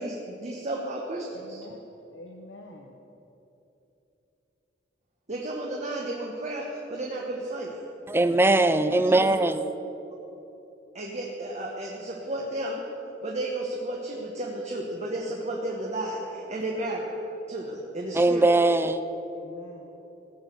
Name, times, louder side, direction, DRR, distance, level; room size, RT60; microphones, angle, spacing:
voice 1, 0.0-1.6 5.3-7.8 9.0-9.3 10.9-12.8 13.2-17.1 17.5-18.5, right 1 dB, 40° right, -1 dB, 1.2 m, -33 dB
voice 2, 1.3-1.8 2.1-3.0 8.4-9.1 19.3-19.9, left 1 dB, 85° left, 2 dB, 1.0 m, -46 dB
voice 3, 8.1-9.6 18.2-19.0, right 2 dB, 15° right, 12 dB, 0.5 m, -21 dB
16.0 x 6.4 x 7.9 m, 3.0 s
head